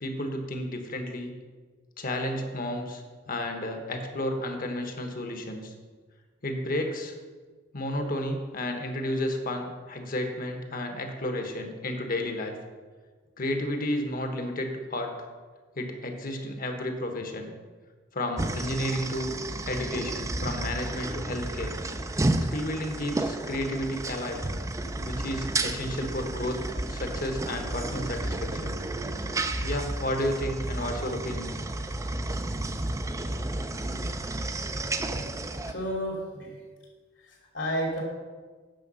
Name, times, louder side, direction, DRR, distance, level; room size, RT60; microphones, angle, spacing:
voice 1, 0.0-1.3 2.0-5.7 6.4-7.1 7.7-12.5 13.4-15.3 15.7-17.5 18.1-19.3 19.7-21.7 22.5-24.4 25.0-26.6 26.9-28.8 29.6-31.5 33.8-34.1, left 1 dB, 50° left, 5 dB, 1.3 m, -32 dB
sound 1, 18.4-35.7, right 2 dB, 15° right, 0.4 m, -32 dB
voice 2, 35.3-36.6 37.2-38.0, equal, 70° left, -1 dB, 2.7 m, -32 dB
9.2 x 6.6 x 5.5 m, 1.4 s
head